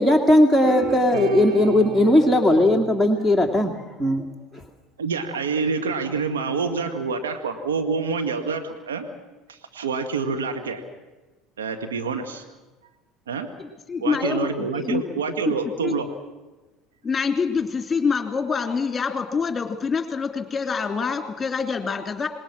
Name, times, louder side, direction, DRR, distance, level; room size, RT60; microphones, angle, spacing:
voice 1, 0.0-4.2 4.5-4.6, left 1 dB, 10° right, 5 dB, 2.3 m, -18 dB
sound 1, 0.6-4.1, right 9 dB, 60° right, 2.4 m, -32 dB
voice 2, 5.0-9.1 9.5-10.8 11.6-12.4 13.3-13.5 14.0-16.1, right 5 dB, 90° right, 5 dB, 1.8 m, -27 dB
voice 3, 13.6-15.0 15.4-15.5 15.8-15.9 17.0-22.3, left 5 dB, 25° left, 6 dB, 2.9 m, -26 dB
27.5 x 20.5 x 6.1 m, 1.2 s
hypercardioid pair, 75°, 0 cm